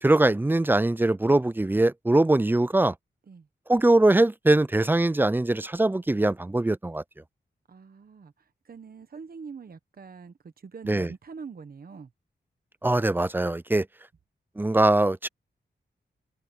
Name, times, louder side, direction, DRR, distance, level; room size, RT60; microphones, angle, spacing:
voice 1, 0.0-2.9 3.7-7.0 10.9-11.1 12.8-13.9 14.6-15.3, right 2 dB, 10° right, 0.4 m, -22 dB
voice 2, 7.7-8.3 8.6-12.1, right 5 dB, 55° right, 1.0 m, -44 dB
wide cardioid pair, 95°, 18 cm